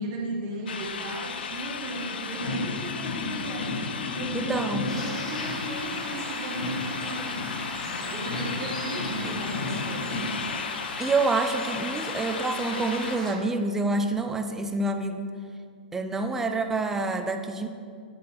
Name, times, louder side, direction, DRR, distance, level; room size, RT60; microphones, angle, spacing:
voice 1, 0.0-7.5 8.1-10.2, right 2 dB, 35° right, -1 dB, 1.5 m, -36 dB
sound 1, 0.7-13.2, left 6 dB, 80° left, 0.6 m, -35 dB
sound 2, 2.3-6.2 6.5-10.5, left 2 dB, 60° left, 1.6 m, -35 dB
voice 2, 4.3-4.9 11.0-15.4 15.9-17.7, right 3 dB, 5° right, 7 dB, 0.4 m, -27 dB
sound 3, 4.9-13.3, left 1 dB, 10° left, 1.2 m, -38 dB
10.5 x 4.0 x 4.5 m, 2.3 s
hypercardioid pair, 155°, 5 cm